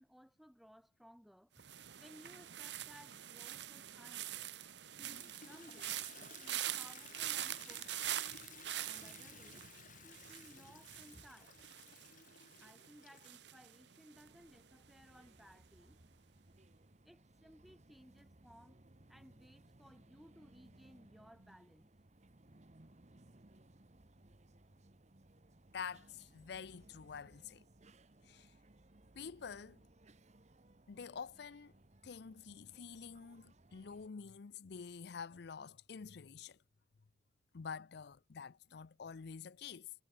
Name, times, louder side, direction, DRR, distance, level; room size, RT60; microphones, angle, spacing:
voice 1, 0.0-4.5 5.5-8.0 8.8-9.7 10.0-11.7 12.6-16.0 17.0-18.8 19.1-21.9, equal, ahead, 1.9 m, -61 dB
sound 1, 1.6-14.6 14.9-15.3, right 12 dB, 70° right, 1.1 m, -45 dB
Toilet flush, 5.0-13.5, left 6 dB, 45° left, 4.1 m, -57 dB
sound 2, 14.1-34.1, right 1 dB, 40° right, 1.3 m, -64 dB
voice 2, 25.7-27.6 28.2-28.5 29.2-29.8 30.9-31.7 32.0-36.6 37.5-39.9, left 6 dB, 65° left, 0.5 m, -48 dB
head